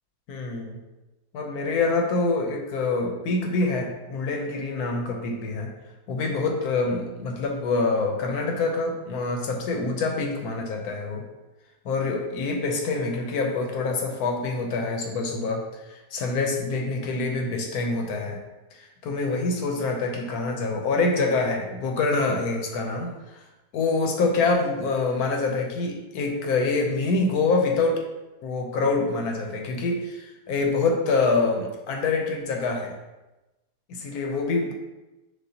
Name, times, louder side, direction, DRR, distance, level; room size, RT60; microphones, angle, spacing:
voice 1, 0.3-0.8 1.3-5.7 6.1-11.2 11.8-18.4 18.7-23.4 23.7-28.0 28.4-32.9 33.9-34.7, left 3 dB, 75° left, 2 dB, 1.1 m, -26 dB
6.2 x 2.5 x 2.7 m, 1.0 s
omnidirectional pair, 1.7 m